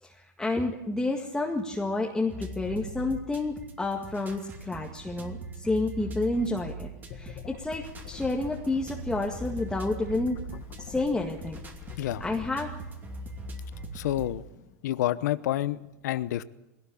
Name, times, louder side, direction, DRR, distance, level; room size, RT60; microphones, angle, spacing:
voice 1, 0.0-10.4 10.8-11.6 12.0-12.7, left 2 dB, 5° left, 0 dB, 2.0 m, -30 dB
sound 1, 2.3-14.3, right 2 dB, 20° right, 2.7 m, -41 dB
sound 2, 7.1-12.5, left 9 dB, 45° left, 1.7 m, -44 dB
voice 2, 13.9-14.5 14.8-16.4, left 14 dB, 75° left, 15 dB, 0.9 m, -29 dB
21.0 x 18.0 x 8.6 m, 0.98 s
supercardioid pair, 135°, 9 cm